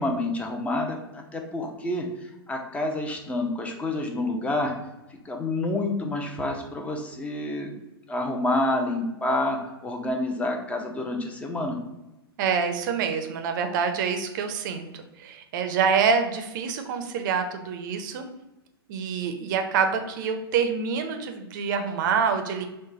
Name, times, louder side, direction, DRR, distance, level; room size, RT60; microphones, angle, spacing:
voice 1, 0.0-2.1 2.5-4.7 5.2-7.7 8.1-11.8, left 2 dB, 10° left, 2 dB, 0.5 m, -28 dB
voice 2, 12.4-14.9 15.2-18.3 18.9-22.7, right 6 dB, 50° right, 6 dB, 0.5 m, -26 dB
3.1 x 2.1 x 3.7 m, 0.98 s
figure-of-eight pair, 105°, 13 cm